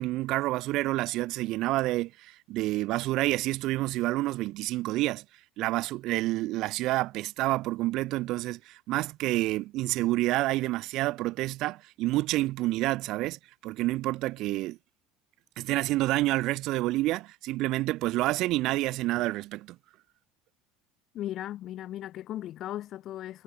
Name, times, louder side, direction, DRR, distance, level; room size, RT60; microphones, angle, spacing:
voice 1, 0.0-5.2 5.6-14.8 15.6-19.8, right 18 dB, 60° right, 1.0 m, -28 dB
voice 2, 21.1-23.4, left 13 dB, 50° left, 4.9 m, -37 dB
cardioid pair, 130°, 0 cm